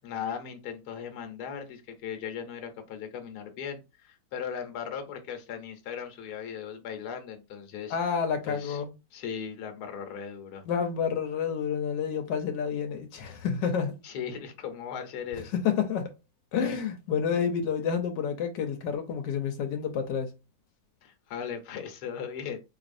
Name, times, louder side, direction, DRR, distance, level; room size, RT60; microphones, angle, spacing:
voice 1, 0.0-8.0 8.5-8.8 9.1-10.6 14.0-15.6 21.0-22.6, left 7 dB, 70° left, 1.3 m, -38 dB
voice 2, 7.9-8.9 10.7-14.0 15.5-16.1 16.5-20.3, left 7 dB, 85° left, 1.3 m, -29 dB
4.1 x 3.1 x 2.5 m
omnidirectional pair, 1.9 m